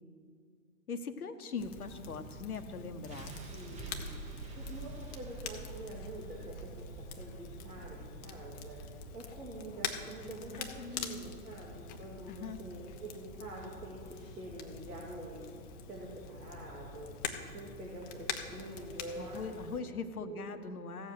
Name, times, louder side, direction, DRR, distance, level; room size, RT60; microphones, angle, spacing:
voice 1, 0.9-3.4 10.5-11.4 12.3-12.6 19.2-21.1, left 4 dB, 80° left, 8 dB, 1.1 m, -41 dB
Crackle, 1.6-19.8, left 6 dB, 20° left, 0.8 m, -45 dB
sound 1, 3.1-15.1, right 3 dB, 15° right, 1.3 m, -49 dB
voice 2, 3.5-4.2 4.6-8.8 9.1-15.4 15.9-17.1 17.5-19.4 19.7-19.9 20.2-20.5, right 2 dB, 80° right, -4 dB, 2.6 m, -46 dB
16.0 x 7.4 x 6.5 m, 2.2 s
figure-of-eight pair, 125°, 44 cm